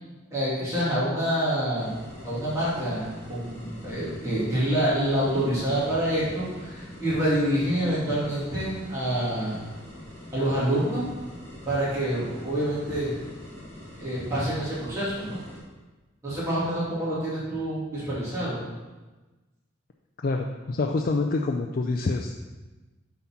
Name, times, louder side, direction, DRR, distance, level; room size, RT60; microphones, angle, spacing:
voice 1, 0.3-1.9 2.2-9.6 10.3-11.1 11.7-13.2 13.9-15.4 16.2-18.6, right 1 dB, 15° right, -11 dB, 2.4 m, -27 dB
sound 1, 1.7-15.6, left 1 dB, 10° left, 2.5 m, -44 dB
voice 2, 20.2-22.5, left 3 dB, 45° left, 3 dB, 0.4 m, -27 dB
7.5 x 4.2 x 5.8 m, 1.2 s
head